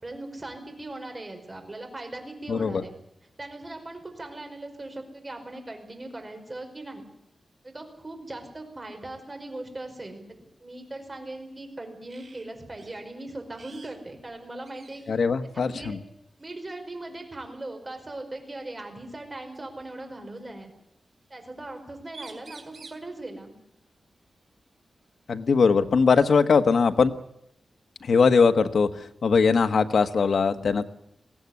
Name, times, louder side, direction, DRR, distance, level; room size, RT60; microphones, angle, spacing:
voice 1, 0.0-2.9 3.4-7.1 7.6-10.2 10.6-15.0 15.7-16.0 16.4-20.7 21.3-23.5, right 2 dB, 25° right, 4 dB, 5.1 m, -39 dB
voice 2, 2.5-2.8 15.1-16.0 25.3-27.1 28.0-30.8, left 5 dB, 65° left, 8 dB, 1.3 m, -21 dB
sound 1, 12.1-12.5 12.8-13.0 13.5-14.0 14.3-14.4 14.6-15.2 16.4-16.6 18.3-18.4 19.5-20.4 21.8-21.9 22.1-23.1 25.0-25.1 25.6-26.6, right 4 dB, 50° right, 3.5 m, -49 dB
22.0 x 16.5 x 9.7 m, 0.80 s
wide cardioid pair, 160°, 0 cm